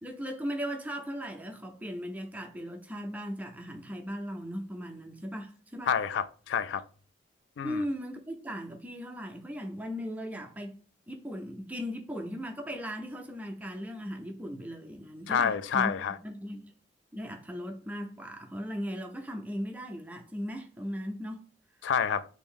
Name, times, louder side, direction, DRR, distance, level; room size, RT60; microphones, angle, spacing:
voice 1, 0.0-5.9 7.6-10.8 11.1-15.9 16.2-16.7 17.1-21.4, equal, 10° right, 0.4 m, -37 dB
voice 2, 5.9-6.8 7.6-7.8 15.3-16.2 21.8-22.3, left 7 dB, 80° left, 0.3 m, -28 dB
3.5 x 2.6 x 3.6 m
head